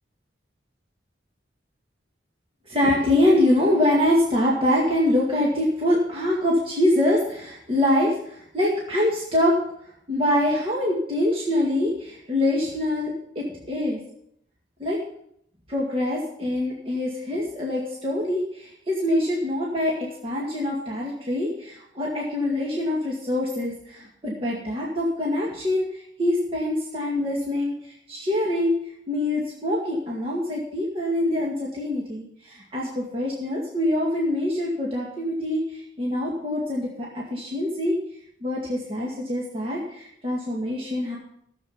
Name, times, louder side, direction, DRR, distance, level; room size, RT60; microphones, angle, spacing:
voice 1, 2.7-9.6 10.1-14.0 14.8-15.0 15.7-28.8 29.1-37.9 38.4-41.2, left 1 dB, 30° right, -3 dB, 2.1 m, -24 dB
14.5 x 7.6 x 5.6 m, 0.72 s
head